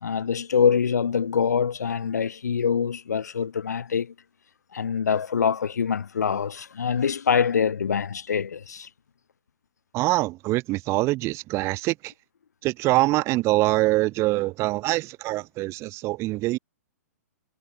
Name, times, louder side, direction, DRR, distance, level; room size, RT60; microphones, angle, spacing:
voice 1, 0.0-4.1 4.7-8.9, left 7 dB, 85° left, 1.2 m, -24 dB
voice 2, 9.9-12.1 12.6-16.6, right 19 dB, 30° right, 2.0 m, -24 dB
hypercardioid pair, 130°, 9 cm